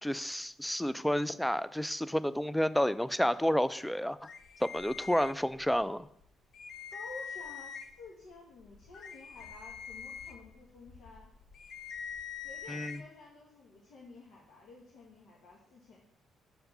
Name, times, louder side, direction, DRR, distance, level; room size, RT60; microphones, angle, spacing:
voice 1, 0.0-4.2 4.6-6.1 12.7-13.0, equal, 5° left, 16 dB, 0.4 m, -30 dB
sound 1, 4.2-5.8 6.2-6.3 6.5-8.1 8.6-13.0, left 7 dB, 55° left, 0.6 m, -44 dB
voice 2, 6.9-11.3 12.4-16.0, left 3 dB, 80° left, -3 dB, 1.4 m, -52 dB
6.5 x 4.7 x 6.6 m, 0.72 s
cardioid pair, 90°, 0 cm